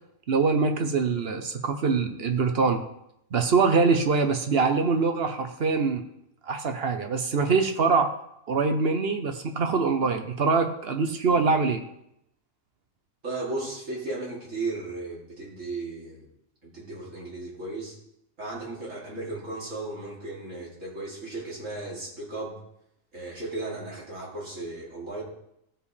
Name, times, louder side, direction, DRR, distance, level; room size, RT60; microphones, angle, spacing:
voice 1, 0.3-2.8 3.3-6.0 6.4-8.1 8.5-11.8, right 4 dB, 55° right, 6 dB, 0.9 m, -24 dB
voice 2, 13.2-16.3 16.6-18.0 18.4-22.6 23.1-25.2, right 2 dB, 70° right, -6 dB, 3.2 m, -35 dB
15.0 x 5.4 x 3.3 m, 0.78 s
omnidirectional pair, 1.4 m